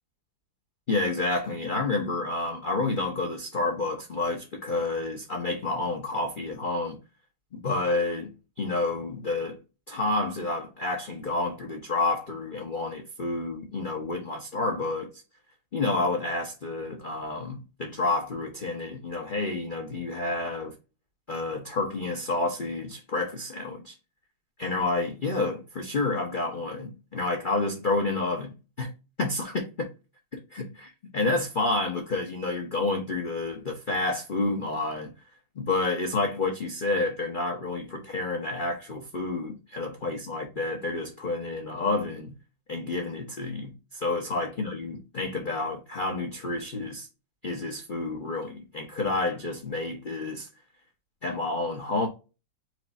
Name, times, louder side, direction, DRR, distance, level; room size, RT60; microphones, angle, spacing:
voice 1, 0.9-7.0 7.5-9.6 9.9-15.1 15.7-20.7 21.3-23.9 24.6-28.9 29.2-29.9 30.3-35.1 35.6-42.4 42.7-47.1 47.4-50.5 51.2-52.1, left 2 dB, 45° left, 0.6 m, -29 dB
4.8 x 2.5 x 4.0 m
omnidirectional pair, 2.1 m